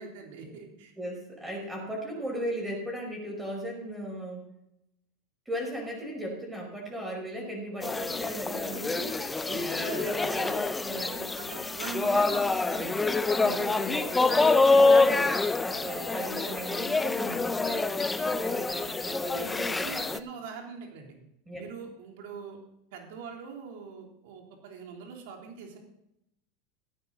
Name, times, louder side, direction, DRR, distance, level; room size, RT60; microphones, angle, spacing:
voice 1, 0.0-0.9 9.5-10.2 11.3-13.1 19.3-21.1 21.5-22.6 22.9-25.8, right 5 dB, 70° right, 1 dB, 3.4 m, -42 dB
voice 2, 1.0-4.5 5.5-11.5 13.3-20.2 21.5-21.7, equal, 10° right, -1 dB, 5.3 m, -37 dB
sound 1, 7.8-20.2, left 3 dB, 10° left, 0.6 m, -26 dB
14.5 x 9.5 x 4.1 m, 0.82 s
supercardioid pair, 115°, 0 cm